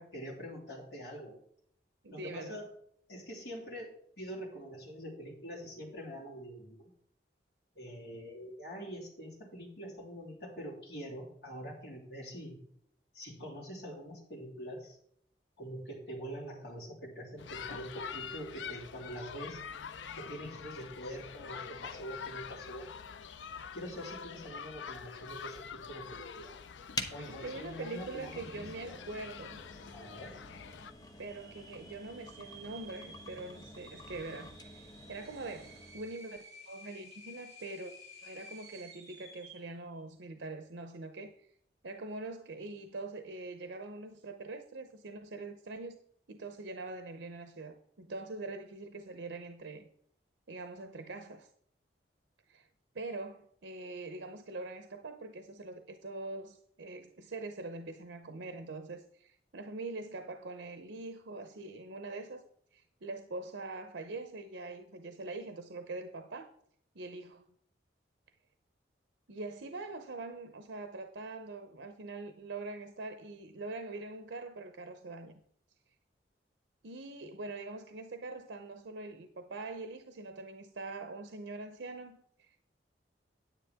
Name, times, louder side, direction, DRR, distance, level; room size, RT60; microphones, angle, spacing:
voice 1, 0.0-1.4 2.1-2.7 3.1-6.9 7.8-12.6 13.1-15.0 15.6-19.6 20.1-22.9 23.7-26.6 27.1-29.0 29.9-30.4, equal, 60° left, 3.8 m, -44 dB
voice 2, 2.0-2.6 27.3-29.6 31.2-37.9 38.2-41.5 41.8-46.0 46.3-49.9 50.5-51.5 52.5-52.7 52.9-62.4 62.7-66.5 66.9-67.4 69.3-75.4 76.8-82.6, right 3 dB, 85° right, 0.8 m, -43 dB
sound 1, 17.4-30.9, left 7 dB, 85° left, 0.5 m, -45 dB
sound 2, 26.9-36.1, left 2 dB, 20° left, 0.8 m, -47 dB
sound 3, 29.7-29.8 30.2-30.3 31.1-39.8, equal, 20° right, 3.4 m, -54 dB
10.0 x 8.9 x 3.6 m
head